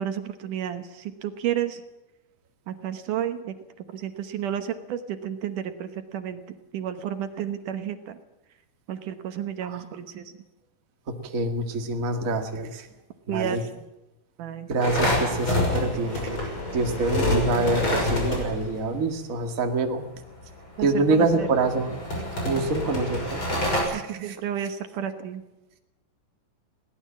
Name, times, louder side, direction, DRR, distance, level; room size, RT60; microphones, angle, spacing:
voice 1, 0.0-1.8 2.7-3.5 3.9-6.4 6.7-8.2 8.9-10.3 13.3-13.6 14.4-14.7 20.8-21.5 23.9-25.4, right 9 dB, 70° right, 8 dB, 2.5 m, -31 dB
voice 2, 11.3-12.9 13.3-13.6 14.7-16.4 16.7-20.0 20.8-22.0 22.4-24.4, right 3 dB, 30° right, 4 dB, 1.8 m, -26 dB
sound 1, 14.8-18.8 20.7-23.8, left 1 dB, 35° left, 6.8 m, -27 dB
21.0 x 18.0 x 7.4 m, 0.97 s
omnidirectional pair, 4.0 m